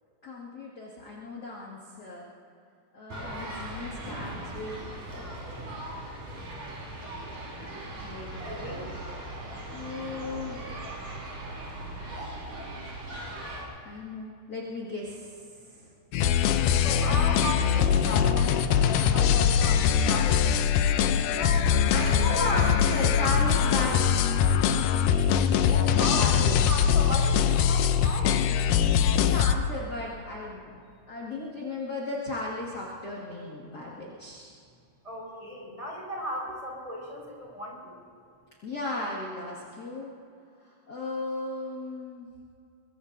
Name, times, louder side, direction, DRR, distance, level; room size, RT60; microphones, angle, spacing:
voice 1, 0.2-2.3 2.9-4.8 5.1-5.6 7.9-8.3 8.6-9.2 9.7-10.6 13.8-15.4 15.7-15.9 21.9-24.6 26.1-26.9 29.0-30.8 31.1-34.5 38.6-40.1 40.9-42.3, left 2 dB, 35° left, -4 dB, 1.8 m, -35 dB
sound 1, 3.1-13.6, right 1 dB, 50° right, 5.8 m, -39 dB
voice 2, 6.2-6.5 8.1-8.8 12.0-12.1 16.7-20.7 21.2-21.7 22.3-22.6 25.7-28.5 35.0-37.9, equal, 10° right, -3 dB, 4.6 m, -36 dB
sound 2, 16.1-29.5, left 8 dB, 85° left, 1.8 m, -22 dB
24.0 x 22.5 x 2.7 m, 2.4 s
omnidirectional pair, 4.4 m